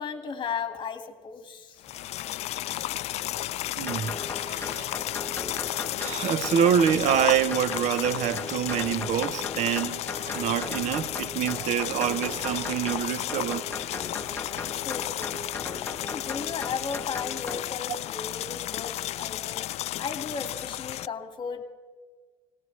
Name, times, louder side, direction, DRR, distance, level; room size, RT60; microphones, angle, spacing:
voice 1, 0.0-1.8 14.7-15.4 16.0-19.6 20.0-21.7, left 6 dB, 35° left, 1.8 m, -35 dB
sound 1, 1.8-21.1, left 14 dB, 50° left, 0.4 m, -33 dB
voice 2, 3.8-5.2 6.0-13.7, right 9 dB, 55° right, 0.7 m, -26 dB
sound 2, 3.9-17.6, left 3 dB, 15° left, 1.1 m, -38 dB
23.5 x 18.5 x 3.2 m
cardioid pair, 110°, 14 cm